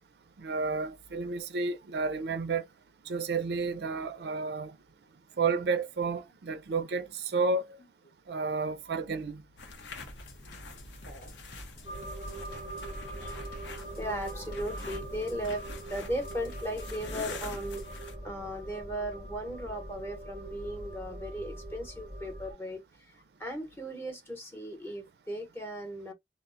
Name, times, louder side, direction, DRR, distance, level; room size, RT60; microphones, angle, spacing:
voice 1, 0.4-2.6 3.1-4.7 5.4-7.8 8.3-9.4, right 4 dB, 65° right, 0.4 m, -31 dB
Bass drum, 2.0-18.0, left 1 dB, 50° left, 0.7 m, -53 dB
sound 1, 9.6-18.2, left 3 dB, 90° left, 0.7 m, -45 dB
sound 2, 11.9-22.5, right 1 dB, 20° right, 0.7 m, -42 dB
voice 2, 14.0-17.8 18.2-26.1, equal, 15° left, 0.8 m, -37 dB
2.1 x 2.0 x 3.7 m
head